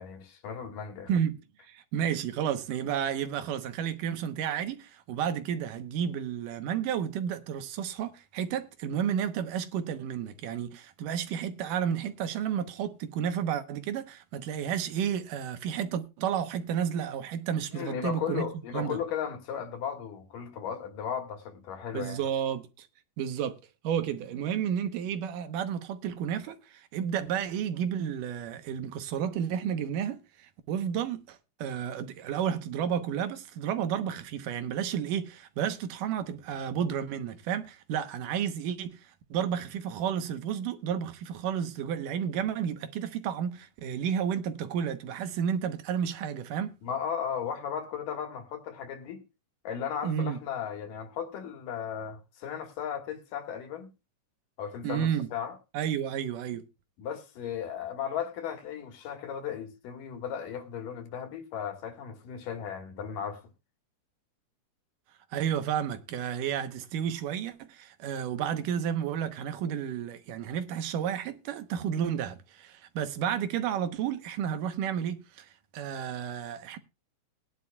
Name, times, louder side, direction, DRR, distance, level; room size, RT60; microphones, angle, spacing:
voice 1, 0.0-1.1 17.7-22.2 46.8-49.2 49.6-53.9 54.6-55.6 57.0-63.4, left 8 dB, 85° left, 3.3 m, -36 dB
voice 2, 1.1-1.4 1.7-18.5 18.7-19.0 21.9-22.9 23.2-23.6 23.8-39.0 39.3-46.8 50.0-50.4 54.8-55.3 55.7-56.7 65.3-76.8, right 8 dB, 80° right, 2.7 m, -31 dB
20.0 x 10.5 x 2.3 m
omnidirectional pair, 3.7 m